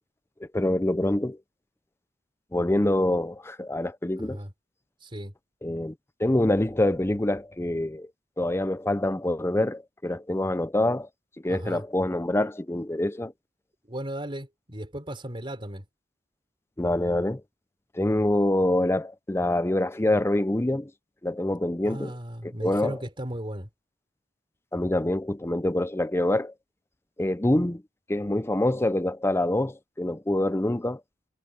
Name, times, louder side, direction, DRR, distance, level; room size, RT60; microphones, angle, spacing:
voice 1, 0.4-1.4 2.5-4.4 5.6-5.9 6.2-8.1 8.4-11.1 11.4-13.3 16.8-17.4 17.9-20.9 21.2-22.1 22.6-23.0 24.7-26.5 27.2-27.8 28.1-31.0, left 1 dB, 15° left, 0.6 m, -25 dB
voice 2, 4.2-4.5 5.0-5.3 11.5-11.8 13.8-15.9 21.8-23.7, right 1 dB, 25° right, 4.1 m, -36 dB
head